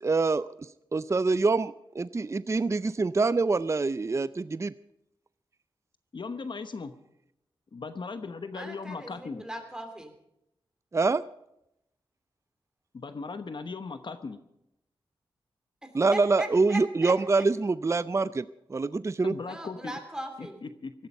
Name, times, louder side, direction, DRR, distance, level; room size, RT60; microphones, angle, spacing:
voice 1, 0.0-4.7 10.9-11.2 15.9-19.3, right 3 dB, 30° right, 16 dB, 0.5 m, -25 dB
voice 2, 6.1-6.9 7.7-9.4 12.9-14.4 19.2-19.9 20.4-20.9, left 4 dB, 55° left, 10 dB, 1.0 m, -38 dB
voice 3, 8.5-10.1 15.8-17.4 19.4-20.6, right 1 dB, 5° right, 5 dB, 3.0 m, -39 dB
17.0 x 13.0 x 5.4 m, 0.83 s
cardioid pair, 60°, 9 cm